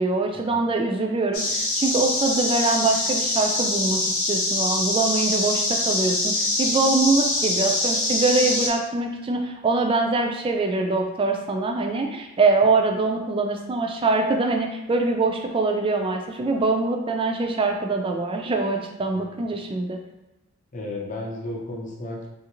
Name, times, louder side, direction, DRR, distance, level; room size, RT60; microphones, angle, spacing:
voice 1, 0.0-4.0 4.3-20.0, right 3 dB, 25° right, 2 dB, 0.3 m, -23 dB
sound 1, 1.3-8.7, left 2 dB, 70° left, 0.8 m, -24 dB
voice 2, 20.7-22.3, left 1 dB, 35° left, -1 dB, 0.6 m, -34 dB
3.1 x 2.5 x 2.9 m, 1.0 s
head